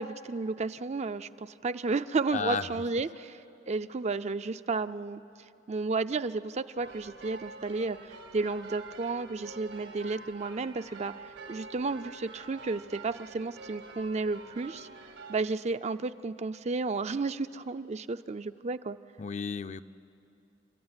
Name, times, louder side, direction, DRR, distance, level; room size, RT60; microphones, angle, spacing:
voice 1, 0.0-3.4 3.7-5.2 5.7-14.9 15.3-19.0, right 3 dB, 35° right, 11 dB, 0.5 m, -32 dB
voice 2, 2.3-2.7 19.2-19.8, left 5 dB, 40° left, 11 dB, 0.5 m, -32 dB
sound 1, 6.8-15.4, right 3 dB, 80° right, 1.9 m, -47 dB
30.0 x 14.0 x 9.7 m, 2.6 s
head